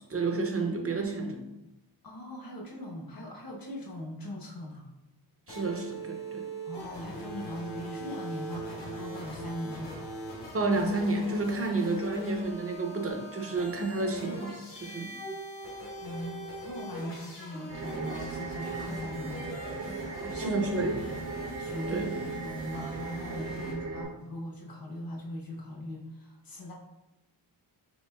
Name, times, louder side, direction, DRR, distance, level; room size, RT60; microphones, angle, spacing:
voice 1, 0.1-1.4 5.5-6.4 10.5-15.1 20.4-21.0 21.9-22.1, right 3 dB, 30° right, 3 dB, 0.6 m, -30 dB
voice 2, 2.0-4.9 6.6-10.2 16.0-21.1 21.6-26.7, left 1 dB, 50° left, -2 dB, 1.0 m, -40 dB
sound 1, 5.5-23.7, right 1 dB, 65° left, 1.2 m, -41 dB
sound 2, 17.7-24.0, right 4 dB, 85° right, 1.3 m, -38 dB
6.0 x 3.1 x 2.2 m, 0.95 s
wide cardioid pair, 125°, 45 cm